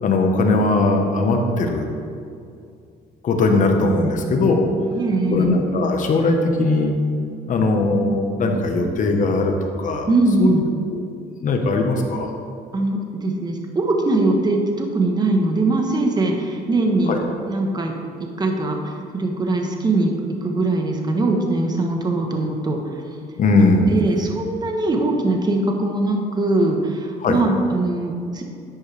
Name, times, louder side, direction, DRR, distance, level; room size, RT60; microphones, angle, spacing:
voice 1, 0.0-1.9 3.2-4.7 5.3-6.9 7.5-10.1 10.4-10.5 10.9-11.0 11.4-12.3 17.1-17.2 23.4-24.3 27.2-27.4, left 2 dB, 50° left, 3 dB, 1.3 m, -19 dB
voice 2, 4.9-5.5 10.1-10.7 12.7-17.2 17.5-17.9 18.2-20.1 20.4-22.8 23.9-28.4, right 2 dB, 25° right, 2 dB, 1.2 m, -21 dB
11.0 x 8.1 x 3.4 m, 2.4 s
cardioid pair, 110°, 17 cm